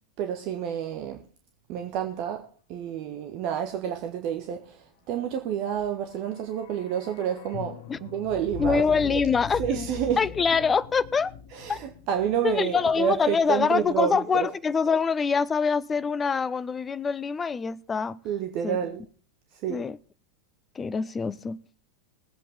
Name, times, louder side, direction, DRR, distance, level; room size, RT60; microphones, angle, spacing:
voice 1, 0.2-1.2 1.7-9.2 9.6-10.2 11.5-14.5 18.2-19.0 19.6-19.8, right 9 dB, 40° right, 1.4 m, -29 dB
sound 1, 5.8-14.0 14.2-14.3, left 7 dB, 50° left, 0.9 m, -41 dB
voice 2, 8.6-9.9 10.2-11.3 11.7-11.8 12.4-18.2 18.6-18.8 19.7-20.0 20.8-21.6, left 5 dB, 15° left, 0.5 m, -25 dB
20.5 x 8.4 x 3.4 m
figure-of-eight pair, 90°, 0 cm